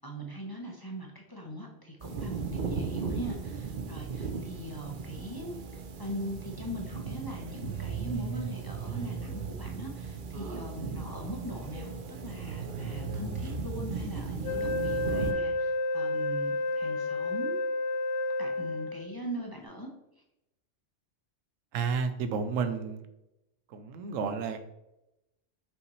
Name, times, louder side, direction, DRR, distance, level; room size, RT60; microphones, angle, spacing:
voice 1, 0.0-5.6 6.0-17.6 18.4-19.9, equal, 20° left, 0 dB, 0.7 m, -41 dB
sound 1, 2.0-15.3, right 5 dB, 50° right, 0.7 m, -36 dB
Wind instrument woodwind instrument, 14.4-19.2, left 2 dB, 70° left, 0.9 m, -30 dB
voice 2, 21.7-23.1 23.7-24.6, right 5 dB, 90° right, 9 dB, 1.0 m, -31 dB
5.6 x 5.5 x 3.1 m, 0.90 s
omnidirectional pair, 1.3 m